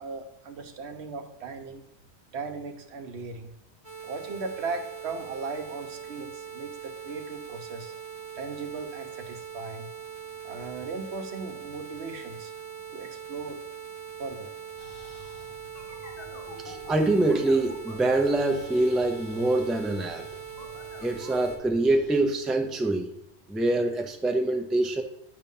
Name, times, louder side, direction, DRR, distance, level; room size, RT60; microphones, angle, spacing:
voice 1, 0.0-1.8 2.3-3.5 4.0-7.9 8.4-9.9 10.4-12.5 12.9-13.6 14.2-14.5, right 4 dB, 75° right, 6 dB, 1.1 m, -37 dB
sound 1, 3.8-21.6, right 8 dB, 15° right, 1.2 m, -41 dB
sound 2, 14.8-22.2, left 1 dB, 40° left, 1.3 m, -47 dB
voice 2, 16.6-20.3 21.0-23.1 23.5-25.0, right 2 dB, ahead, 4 dB, 0.4 m, -25 dB
8.3 x 2.9 x 5.3 m, 0.77 s
omnidirectional pair, 1.1 m